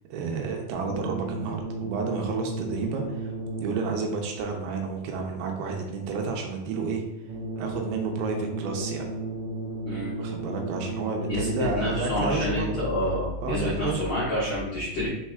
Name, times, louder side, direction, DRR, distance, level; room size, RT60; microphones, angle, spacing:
voice 1, 0.1-3.3 3.6-7.0 7.6-9.1 10.2-12.9 13.4-14.0, right 4 dB, 85° right, 2 dB, 2.5 m, -31 dB
sound 1, 0.8-4.3 7.2-12.3, right 2 dB, 45° right, 2.0 m, -34 dB
voice 2, 11.7-15.1, left 1 dB, 85° left, -9 dB, 1.1 m, -28 dB
5.3 x 4.3 x 2.3 m, 0.91 s
omnidirectional pair, 4.5 m